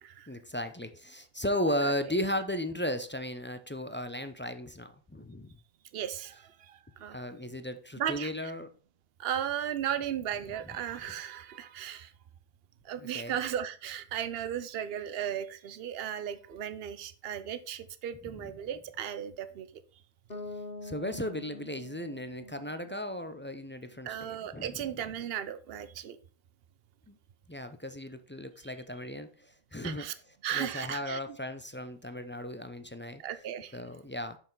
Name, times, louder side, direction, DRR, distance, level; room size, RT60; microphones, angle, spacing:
voice 1, 0.3-5.5 7.1-8.7 12.9-13.4 18.3-18.5 20.8-24.8 27.1-27.2 27.5-30.1 30.5-33.2 33.7-34.4, left 1 dB, 15° left, 9 dB, 0.4 m, -35 dB
voice 2, 5.9-7.2 8.0-8.5 9.2-12.1 12.8-19.7 24.0-26.2 29.8-30.1 30.4-31.2 33.2-33.8, right 10 dB, 70° right, 12 dB, 0.9 m, -36 dB
Bass guitar, 20.3-24.2, left 2 dB, 60° left, 1.7 m, -45 dB
6.7 x 6.0 x 3.9 m, 0.41 s
omnidirectional pair, 1.1 m